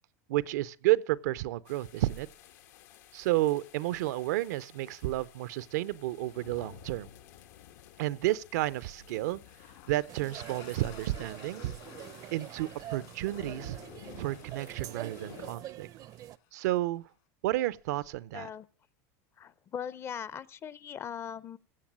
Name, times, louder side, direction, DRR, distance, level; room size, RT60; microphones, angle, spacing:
voice 1, 0.3-2.3 3.1-7.1 8.0-9.4 9.9-11.7 12.3-13.8 14.1-15.9 16.5-17.0 17.4-18.5, right 16 dB, 80° right, 0.6 m, -31 dB
sound 1, 1.6-15.6, left 10 dB, 80° left, 1.3 m, -54 dB
sound 2, 9.5-16.8, left 13 dB, 65° left, 2.3 m, -55 dB
sound 3, 10.1-16.4, right 14 dB, 40° right, 0.5 m, -45 dB
voice 2, 18.3-18.7 19.4-21.6, left 8 dB, 30° left, 0.5 m, -40 dB
16.5 x 7.2 x 7.4 m
supercardioid pair, 130°, 9 cm